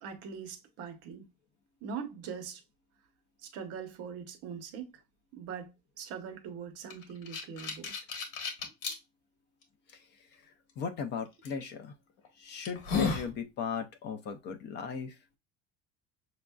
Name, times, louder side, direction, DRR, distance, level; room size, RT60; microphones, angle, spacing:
voice 1, 0.0-1.3 1.8-2.6 3.4-4.9 5.3-7.9, right 6 dB, 50° right, 0.9 m, -42 dB
sound 1, 6.9-9.0 9.6-9.7 11.4-11.6 12.2-12.3 12.6-13.3, left 5 dB, 75° left, 1.4 m, -33 dB
voice 2, 10.8-11.9 12.4-15.2, left 6 dB, 35° left, 0.5 m, -37 dB
6.2 x 2.5 x 2.2 m
cardioid pair, 175°, 31 cm